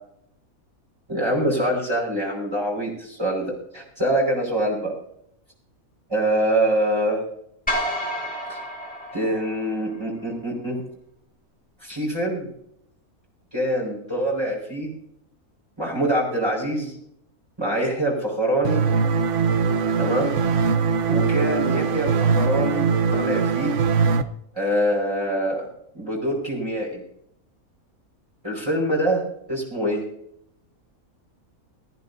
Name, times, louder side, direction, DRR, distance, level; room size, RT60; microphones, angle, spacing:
voice 1, 1.1-4.9 6.1-7.2 8.5-8.6 9.1-10.8 11.8-12.5 13.5-14.9 15.8-16.9 17.6-18.9 20.0-20.4 21.1-23.8 24.5-25.7 25.9-27.0 28.4-29.2 29.5-30.0, right 1 dB, 15° right, -4 dB, 5.0 m, -24 dB
sound 1, 7.7-10.0, equal, 5° left, 2.7 m, -30 dB
sound 2, 18.7-24.2, right 5 dB, 60° right, 1.1 m, -21 dB
19.0 x 14.0 x 2.7 m, 0.73 s
omnidirectional pair, 1.5 m